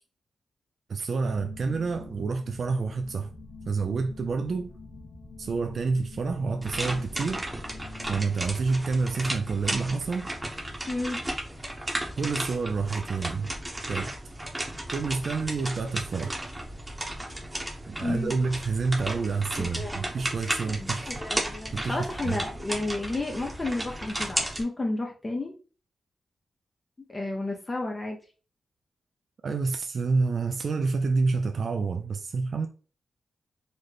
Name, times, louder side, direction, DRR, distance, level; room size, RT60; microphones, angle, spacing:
voice 1, 0.9-3.3 3.7-4.7 5.4-7.5 8.1-10.3 12.2-13.5 13.9-14.1 14.9-16.4 17.9-21.1 21.7-22.4 29.4-32.7, right 4 dB, 60° right, 0.3 m, -28 dB
sound 1, 1.2-10.7, left 3 dB, 90° left, 1.5 m, -47 dB
sound 2, 6.6-24.6, right 1 dB, 15° right, 0.9 m, -34 dB
voice 2, 10.9-11.2 18.0-18.3 19.6-20.1 20.4-25.5 27.1-28.2, left 2 dB, 30° left, 0.6 m, -32 dB
3.9 x 2.1 x 3.3 m
cardioid pair, 80°, 0 cm